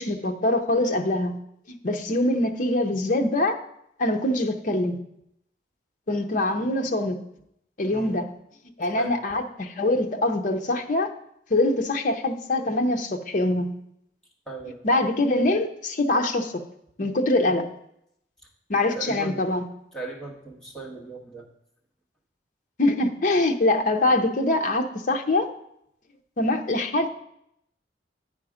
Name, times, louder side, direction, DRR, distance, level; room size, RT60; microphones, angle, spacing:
voice 1, 0.0-1.4 1.7-3.6 4.0-5.0 6.1-7.2 7.8-8.3 8.8-11.1 11.5-13.8 14.8-16.6 17.0-17.7 18.7-19.7 22.8-25.5 26.4-27.1, left 2 dB, 45° left, 4 dB, 0.7 m, -24 dB
voice 2, 14.5-14.8 18.9-19.4 19.9-21.5, right 3 dB, 5° left, -3 dB, 1.4 m, -37 dB
9.1 x 4.8 x 5.0 m, 0.76 s
head